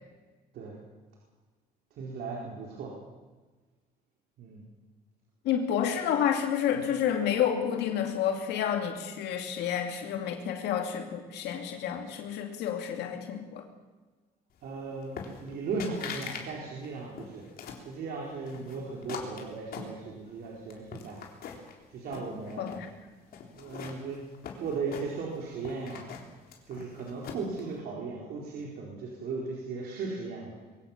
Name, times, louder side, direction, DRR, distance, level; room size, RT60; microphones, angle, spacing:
voice 1, 2.0-2.9 4.4-4.6 14.6-17.4 17.8-21.2 21.9-22.7 23.5-24.2 24.6-26.1 26.7-30.5, right 4 dB, 70° right, -2 dB, 4.3 m, -37 dB
voice 2, 5.4-13.7 22.6-22.9, left 9 dB, 80° left, 4 dB, 2.5 m, -30 dB
sound 1, 15.2-15.5 15.8-16.5 16.8-17.9 18.5-20.3 20.7-21.7 22.1-22.9 23.3-25.4 25.6-27.6, left 6 dB, 60° left, 3.6 m, -42 dB
22.5 x 16.5 x 7.3 m, 1.3 s
cardioid pair, 110°, 17 cm